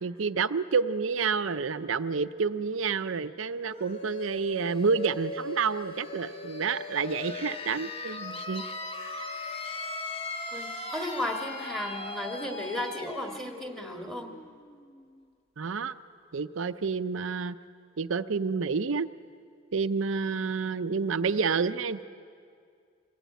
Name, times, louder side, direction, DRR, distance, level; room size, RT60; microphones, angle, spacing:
voice 1, 0.0-8.6 9.1-9.3 15.6-15.9 16.3-17.6 18.0-19.1 19.7-22.0, right 5 dB, 80° right, 10 dB, 0.6 m, -29 dB
sound 1, 3.7-15.3, left 2 dB, 30° left, 1.3 m, -39 dB
voice 2, 10.5-14.3, left 1 dB, ahead, 3 dB, 1.8 m, -35 dB
24.0 x 18.0 x 9.2 m, 2.2 s
head